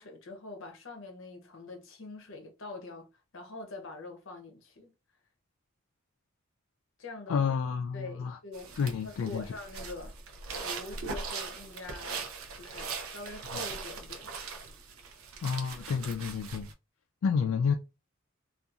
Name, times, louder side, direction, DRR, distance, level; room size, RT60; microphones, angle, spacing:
voice 1, 0.0-4.9 7.0-7.5 7.9-8.7 9.0-10.1 10.6-12.3 12.5-14.6, left 2 dB, 65° left, 0.7 m, -44 dB
voice 2, 7.3-8.4 8.8-9.5 13.5-13.6 15.4-16.7 17.2-17.7, left 6 dB, 80° left, 0.3 m, -30 dB
sound 1, 8.5-16.7, right 4 dB, 80° right, 0.5 m, -40 dB
2.7 x 2.4 x 2.4 m
head